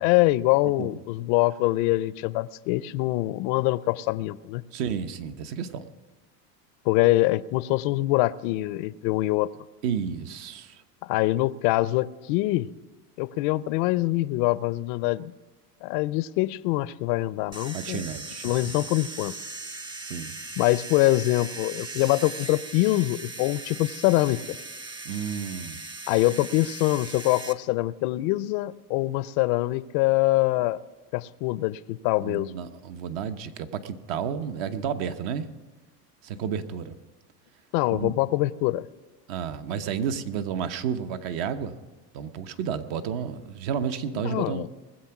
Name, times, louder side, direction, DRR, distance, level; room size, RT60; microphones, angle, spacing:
voice 1, 0.0-4.6 6.8-9.5 11.0-12.7 13.2-15.3 15.8-18.0 18.4-19.4 20.6-24.6 26.1-30.8 31.1-32.5 37.7-38.8 44.2-44.7, left 18 dB, 50° left, 17 dB, 0.5 m, -24 dB
voice 2, 4.7-5.8 9.8-10.8 17.7-18.6 20.0-20.4 25.0-25.8 32.2-35.5 36.2-36.9 37.9-38.1 39.3-41.8 42.1-44.7, right 7 dB, 55° right, 10 dB, 1.1 m, -31 dB
sound 1, 17.5-27.5, right 2 dB, 10° right, 0.6 m, -39 dB
20.0 x 7.8 x 5.9 m, 1.2 s
supercardioid pair, 125°, 48 cm